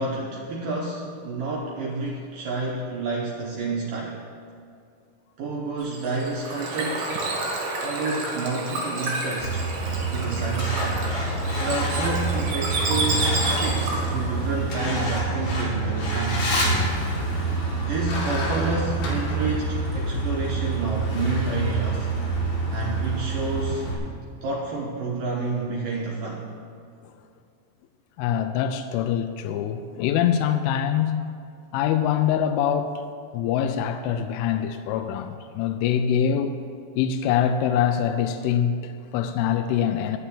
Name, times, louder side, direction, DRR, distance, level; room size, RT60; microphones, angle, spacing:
voice 1, 0.0-4.2 5.4-7.1 7.8-9.6 10.1-11.0 11.6-16.8 17.9-22.1 22.7-23.8 24.4-26.5, right 3 dB, 85° right, -3 dB, 1.9 m, -29 dB
Bird / Water, 5.8-14.2, right 2 dB, 55° right, 3.2 m, -30 dB
Truck, 9.4-23.9, right 2 dB, 55° left, 3.8 m, -26 dB
voice 2, 28.2-31.3 31.7-33.0 33.3-36.6 37.0-40.2, left 9 dB, 90° left, 8 dB, 3.1 m, -24 dB
9.9 x 7.3 x 8.6 m, 2.3 s
omnidirectional pair, 5.4 m